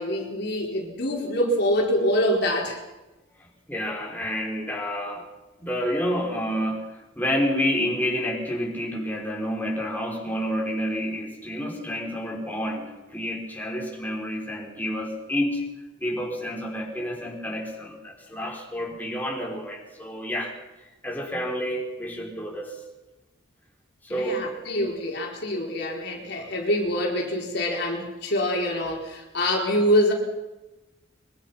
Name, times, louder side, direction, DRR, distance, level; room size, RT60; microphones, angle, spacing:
voice 1, 0.0-2.8 24.1-30.1, equal, 55° left, 0 dB, 4.6 m, -25 dB
voice 2, 3.4-5.3 5.6-15.7 16.0-20.5 20.8-22.8 24.0-24.5 26.4-26.5, equal, 10° left, -1 dB, 5.1 m, -29 dB
24.5 x 24.0 x 5.8 m, 1.0 s
head